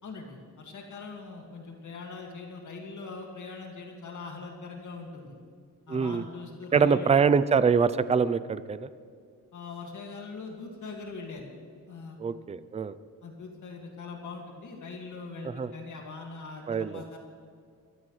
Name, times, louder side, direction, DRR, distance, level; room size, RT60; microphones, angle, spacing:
voice 1, 0.0-5.3 5.9-7.2 9.5-11.5 11.9-12.2 13.2-17.2, left 4 dB, 55° left, 1 dB, 2.1 m, -42 dB
voice 2, 5.9-6.2 6.7-8.9 12.2-12.9 15.6-15.7 16.7-17.0, right 6 dB, 20° right, 15 dB, 0.4 m, -24 dB
22.5 x 13.5 x 3.2 m, 2.2 s
cardioid pair, 115°, 37 cm